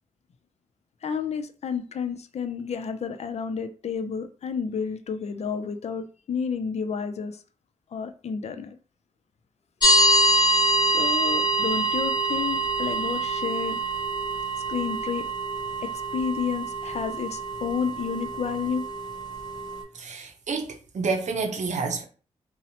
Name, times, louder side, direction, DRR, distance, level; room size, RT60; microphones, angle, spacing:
voice 1, 1.0-7.4 7.9-8.8 10.8-13.8 14.7-15.2 15.8-18.8, left 6 dB, 60° left, 0.4 m, -30 dB
sound 1, 9.8-19.8, right 2 dB, 35° left, 0.7 m, -25 dB
voice 2, 20.0-22.0, right 4 dB, 70° right, 0.6 m, -29 dB
2.7 x 2.0 x 2.8 m
cardioid pair, 50°, 13 cm